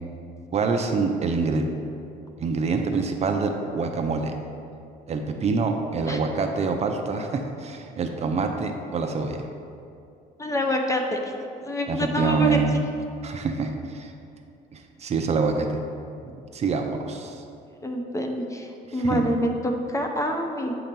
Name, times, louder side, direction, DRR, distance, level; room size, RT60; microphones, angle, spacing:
voice 1, 0.5-1.7 2.4-4.3 5.1-9.5 11.9-12.7 13.2-14.1 14.7-15.8 16.5-17.4 18.9-19.2, right 4 dB, 40° right, 4 dB, 0.6 m, -26 dB
voice 2, 10.4-11.3 11.6-12.6 17.8-20.7, equal, 20° left, 3 dB, 0.6 m, -26 dB
8.5 x 2.9 x 5.3 m, 2.5 s
cardioid pair, 110°, 17 cm